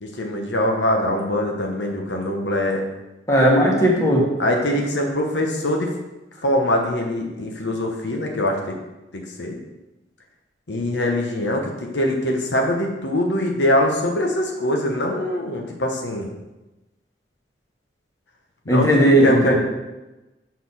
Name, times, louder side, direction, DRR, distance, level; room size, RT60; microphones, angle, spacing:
voice 1, 0.0-2.8 4.4-5.9 6.4-8.8 9.1-9.6 10.7-16.3 18.6-18.9 19.2-19.6, left 1 dB, 85° left, 1 dB, 1.0 m, -23 dB
voice 2, 3.3-4.2 18.7-19.6, equal, 20° left, -3 dB, 1.5 m, -16 dB
6.4 x 4.2 x 5.5 m, 1.0 s
head